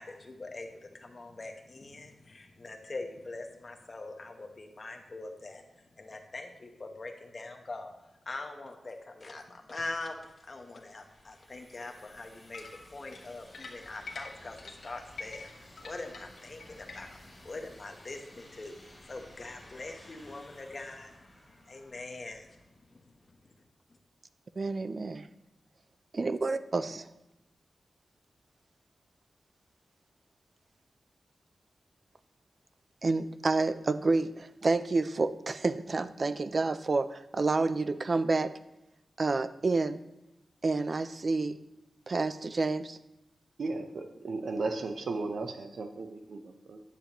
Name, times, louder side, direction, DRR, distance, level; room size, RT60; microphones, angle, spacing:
voice 1, 0.0-5.6 6.0-7.9 8.3-10.1 10.5-12.7 12.9-17.2 17.4-18.7 19.1-21.1 21.7-22.6, left 2 dB, 35° left, 3 dB, 1.0 m, -43 dB
sound 1, 9.6-23.0, left 1 dB, 15° left, 2.7 m, -55 dB
sound 2, 12.5-17.3, left 3 dB, 70° left, 1.2 m, -46 dB
voice 2, 24.6-25.3 26.1-27.1 33.0-38.5 39.2-40.0 40.6-41.6 42.1-43.0, right 3 dB, 40° right, 12 dB, 0.4 m, -29 dB
voice 3, 43.6-46.8, right 3 dB, 70° right, 6 dB, 0.7 m, -35 dB
10.0 x 6.9 x 2.9 m, 0.93 s
wide cardioid pair, 140°, 0 cm